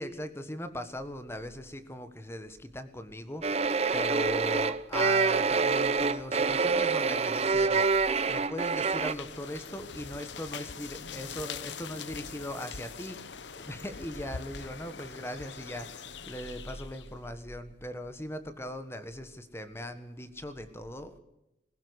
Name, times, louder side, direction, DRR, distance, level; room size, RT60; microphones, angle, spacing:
voice 1, 0.0-21.2, left 1 dB, 15° left, 10 dB, 1.4 m, -39 dB
sound 1, 3.4-9.1, right 4 dB, 35° right, 0.7 m, -26 dB
sound 2, 8.8-17.2, left 6 dB, 75° left, 1.0 m, -43 dB
20.0 x 16.5 x 8.2 m, 0.91 s
head